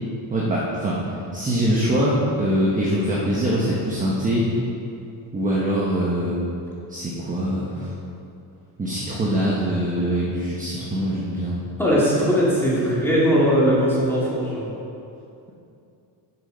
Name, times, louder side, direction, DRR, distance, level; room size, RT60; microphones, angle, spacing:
voice 1, 0.3-1.1 1.3-4.5 5.3-6.4 6.9-7.9 8.8-11.6, equal, 20° right, -5 dB, 1.0 m, -23 dB
voice 2, 11.8-14.6, equal, 5° left, -7 dB, 2.2 m, -19 dB
8.9 x 7.4 x 3.9 m, 2.6 s
cardioid pair, 145°, 45 cm